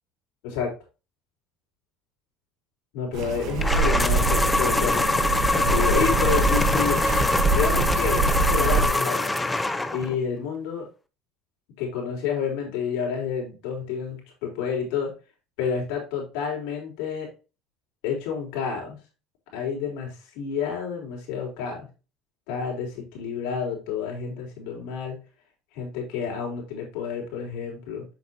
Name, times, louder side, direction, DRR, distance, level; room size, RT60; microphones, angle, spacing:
voice 1, 2.9-5.1 5.5-7.0 7.5-9.4 9.9-10.9 11.8-15.1 15.6-17.3 18.0-19.0 19.5-21.9 22.5-25.2 25.7-28.0, left 7 dB, 75° left, 0 dB, 3.6 m, -29 dB
sound 1, 3.1-8.9, right 4 dB, 60° right, 1.5 m, -25 dB
sound 2, 3.6-10.2, left 2 dB, 10° left, 0.6 m, -24 dB
7.4 x 6.0 x 2.8 m, 0.31 s
supercardioid pair, 115°, 0 cm